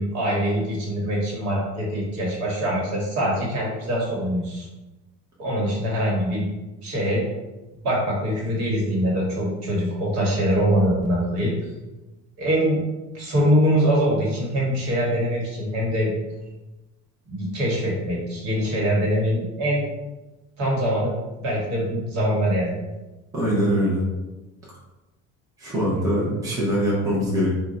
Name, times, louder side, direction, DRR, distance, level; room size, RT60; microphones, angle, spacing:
voice 1, 0.0-4.7 5.4-6.4 6.8-7.2 7.8-11.7 12.4-12.8 13.1-16.1 17.3-19.9 20.6-21.1 21.4-22.7, equal, 50° right, -3 dB, 1.4 m, -23 dB
voice 2, 23.3-24.0 25.6-27.5, equal, 10° right, -7 dB, 0.8 m, -22 dB
3.6 x 2.3 x 3.9 m, 1.1 s
cardioid pair, 165°, 34 cm